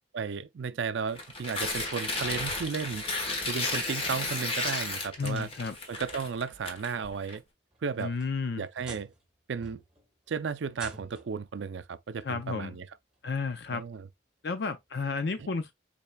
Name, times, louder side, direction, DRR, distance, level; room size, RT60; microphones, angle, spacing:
voice 1, 0.1-3.0 3.3-5.5 5.9-7.4 7.8-8.1 8.6-9.1 9.5-9.8 10.3-12.9 13.7-14.1 15.4-15.5, right 5 dB, 70° right, 0.4 m, -34 dB
Tearing, 1.1-7.3, left 2 dB, 30° left, 1.1 m, -33 dB
voice 2, 5.2-5.7 8.0-8.6 12.2-12.8 13.2-13.8 14.4-15.7, left 4 dB, 60° left, 0.5 m, -32 dB
sound 1, 7.7-9.3 9.6-10.1 10.7-11.4 12.6-12.7 13.3-13.4 15.0-15.1, right 2 dB, 5° right, 2.1 m, -47 dB
5.6 x 4.2 x 2.2 m
head